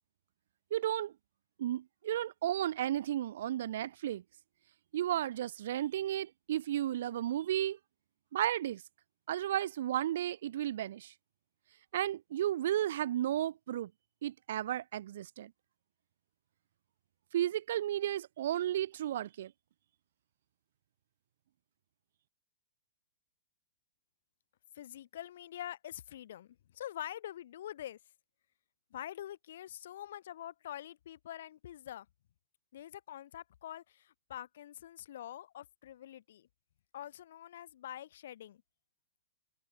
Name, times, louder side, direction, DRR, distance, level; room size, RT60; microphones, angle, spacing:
voice 1, 0.7-1.1 1.6-4.2 4.9-7.8 8.3-8.8 9.3-11.1 11.9-13.9 14.2-15.5 17.3-19.5, right 12 dB, 65° right, 1.1 m, -33 dB
voice 2, 24.7-28.0 28.9-32.1 32.7-36.5 36.9-38.6, left 11 dB, 65° left, 4.2 m, -45 dB
hypercardioid pair, 140°, 0 cm